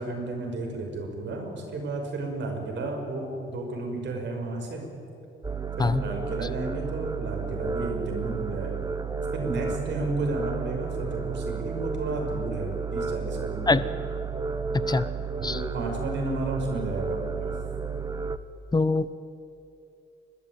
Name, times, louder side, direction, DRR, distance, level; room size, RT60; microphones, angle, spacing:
voice 1, 0.0-4.8 5.8-8.9 9.3-13.8 15.4-17.5, right 2 dB, 65° right, 2 dB, 6.0 m, -32 dB
sound 1, 5.4-18.4, right 5 dB, 20° right, 1.0 m, -32 dB
voice 2, 18.7-19.1, left 3 dB, 20° left, 15 dB, 0.9 m, -23 dB
29.5 x 13.5 x 9.2 m, 2.7 s
cardioid pair, 90°, 20 cm